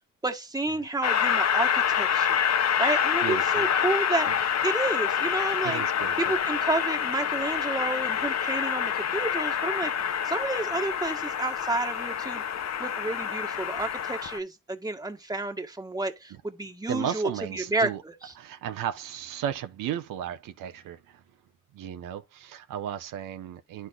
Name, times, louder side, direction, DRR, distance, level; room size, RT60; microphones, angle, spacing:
voice 1, 0.2-2.4 2.8-5.8 6.2-9.9 10.2-12.4 12.8-18.1, right 2 dB, 10° right, 1.6 m, -30 dB
Train, 1.0-14.4, left 8 dB, 55° left, 0.9 m, -27 dB
voice 2, 3.2-3.7 4.3-4.4 5.6-6.2 16.3-16.4 16.9-18.0 18.4-21.2 21.7-23.9, right 10 dB, 85° right, 0.9 m, -34 dB
11.5 x 4.3 x 2.3 m
cardioid pair, 80°, 32 cm